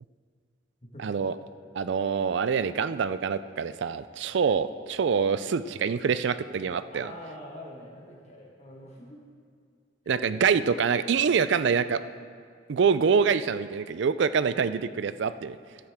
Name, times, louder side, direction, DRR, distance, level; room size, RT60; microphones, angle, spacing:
voice 1, 1.0-1.3 1.7-7.1 10.1-12.0 12.7-15.6, right 6 dB, 60° right, 14 dB, 0.3 m, -25 dB
voice 2, 6.9-9.2 10.1-10.3 14.5-15.1, equal, 30° left, -2 dB, 1.6 m, -45 dB
13.0 x 12.5 x 3.6 m, 2.1 s
head